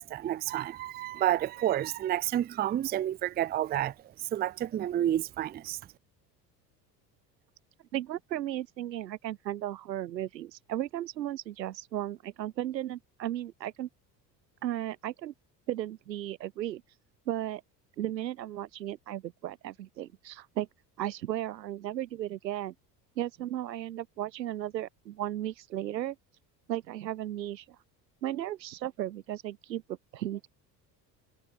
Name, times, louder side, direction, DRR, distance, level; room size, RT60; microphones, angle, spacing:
voice 1, 0.0-5.8, right 12 dB, 20° right, 0.4 m, -30 dB
voice 2, 7.9-13.9 14.6-15.3 15.7-16.8 17.3-17.6 18.0-20.7 21.0-22.7 23.2-26.2 26.7-27.6 28.2-30.5, right 13 dB, 85° right, 1.2 m, -35 dB
hypercardioid pair, 65°, 50 cm